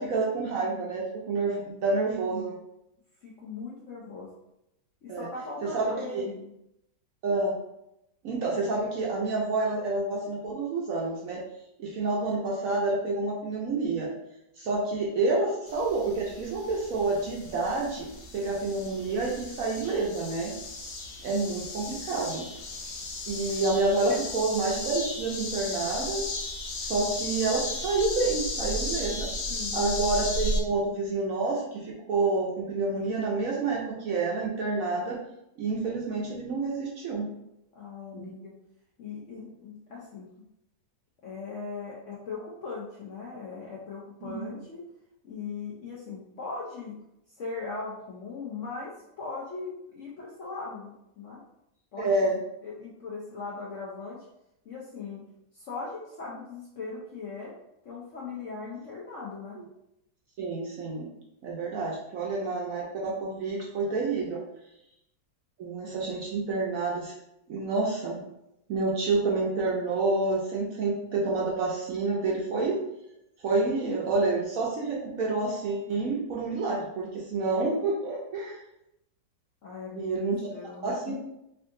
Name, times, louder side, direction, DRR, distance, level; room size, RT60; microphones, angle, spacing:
voice 1, 0.0-2.5 5.1-5.3 5.6-6.3 7.2-7.5 8.2-11.4 11.8-14.1 14.6-20.5 21.2-22.5 23.3-26.2 26.8-29.3 29.7-35.2 35.6-37.3 38.1-38.3 44.2-44.5 52.0-52.4 60.4-61.1 61.4-64.4 65.6-67.1 67.5-68.2 68.7-72.8 73.4-78.6 79.9-80.4 80.8-81.1, right 3 dB, 65° right, -3 dB, 0.9 m, -28 dB
voice 2, 3.2-4.3 5.0-6.5 23.5-23.6 29.5-29.9 37.7-38.5 39.0-40.3 41.2-44.8 45.2-47.0 47.4-51.4 51.9-52.1 52.6-54.3 54.6-55.2 55.5-57.5 57.8-59.6 79.6-80.1 80.5-81.1, left 4 dB, 65° left, -4 dB, 0.7 m, -39 dB
sound 1, 15.7-30.6, left 2 dB, 90° left, 1.4 m, -35 dB
3.5 x 2.5 x 3.6 m, 0.84 s
omnidirectional pair, 1.9 m